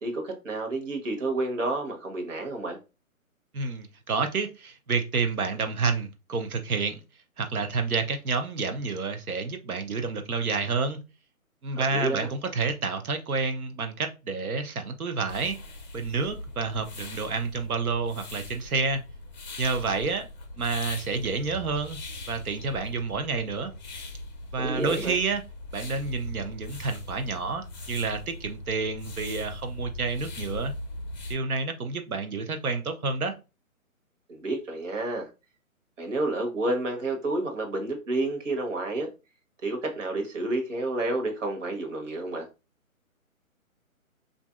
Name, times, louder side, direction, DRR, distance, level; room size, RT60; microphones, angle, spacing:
voice 1, 0.0-2.8 11.7-12.3 24.6-25.2 34.3-35.3 36.0-39.1 39.6-42.5, right 2 dB, 60° right, 1.1 m, -30 dB
voice 2, 3.5-7.0 7.4-11.0 11.6-15.6 15.9-19.0 19.6-20.3 20.6-22.0 22.3-23.7 24.5-25.4 25.7-30.7 31.3-33.3, right 4 dB, 80° right, 0.8 m, -29 dB
sound 1, 15.3-31.4, left 1 dB, 30° left, 0.6 m, -40 dB
3.2 x 2.5 x 2.3 m
figure-of-eight pair, 145°, 43 cm